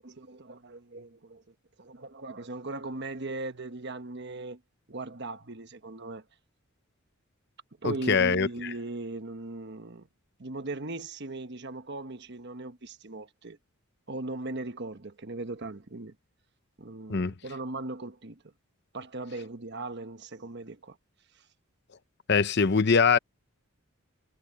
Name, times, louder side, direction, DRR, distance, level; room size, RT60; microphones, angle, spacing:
voice 1, 0.0-1.4 1.8-4.6 4.9-6.2 7.8-10.1 10.4-13.6 14.1-16.1 16.8-18.4 18.9-21.0, right 2 dB, 50° right, 1.2 m, -38 dB
voice 2, 7.8-8.7 17.1-17.3 22.3-23.2, left 5 dB, 50° left, 0.7 m, -23 dB
head